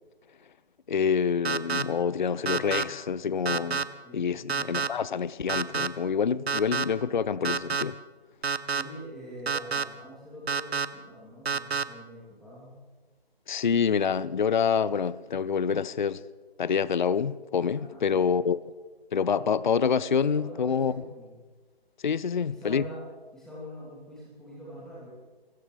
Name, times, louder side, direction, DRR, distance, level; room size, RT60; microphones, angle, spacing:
voice 1, 0.9-3.9 4.1-7.9 13.5-16.2 16.6-18.6 19.1-20.9 22.0-22.8, left 6 dB, 50° left, 0.5 m, -27 dB
sound 1, 1.4-1.8 2.5-2.8 3.5-3.8 4.5-4.9 5.5-5.9 6.5-6.8 7.4-7.8 8.4-8.8 9.5-9.8 10.5-10.9 11.5-11.8, right 5 dB, 85° right, 1.0 m, -27 dB
voice 2, 8.7-12.8 17.9-18.3 20.3-21.3 22.5-23.0 23.3-25.1, equal, ahead, 2.9 m, -44 dB
29.0 x 14.5 x 3.3 m
figure-of-eight pair, 155°, 31 cm